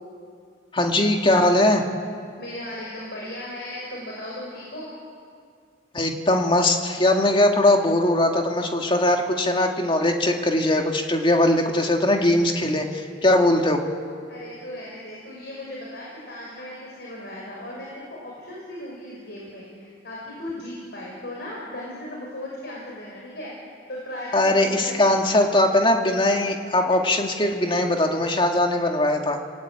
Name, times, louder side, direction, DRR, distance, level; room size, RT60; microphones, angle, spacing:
voice 1, 0.7-1.8 5.9-13.8 24.3-29.4, left 1 dB, 25° left, 3 dB, 2.1 m, -20 dB
voice 2, 2.4-4.9 14.3-25.1, left 1 dB, 60° left, -4 dB, 6.2 m, -37 dB
27.5 x 19.5 x 9.0 m, 2.3 s
head